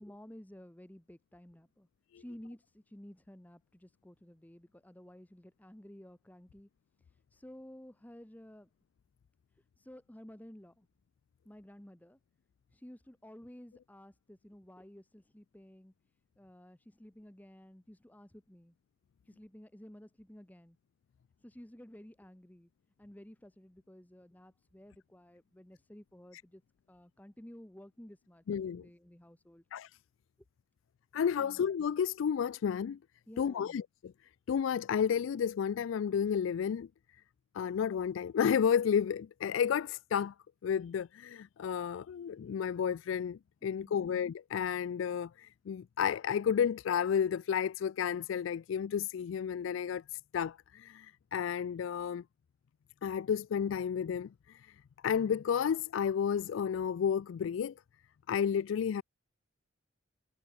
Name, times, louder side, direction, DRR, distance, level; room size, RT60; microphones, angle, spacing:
voice 1, 0.0-1.9 2.1-6.7 7.3-8.7 9.6-10.9 11.4-12.2 12.7-15.9 16.4-18.7 19.2-20.8 21.4-22.7 23.0-26.6 26.9-29.6 31.4-31.6 33.3-33.8 43.8-44.1, equal, 10° left, 0.8 m, -53 dB
voice 2, 28.5-28.9 29.7-29.9 31.1-33.0 33.4-33.8 34.5-36.9 37.5-40.3 40.6-52.2 53.0-54.7 55.0-57.7 58.3-59.0, left 7 dB, 80° left, 0.3 m, -32 dB
head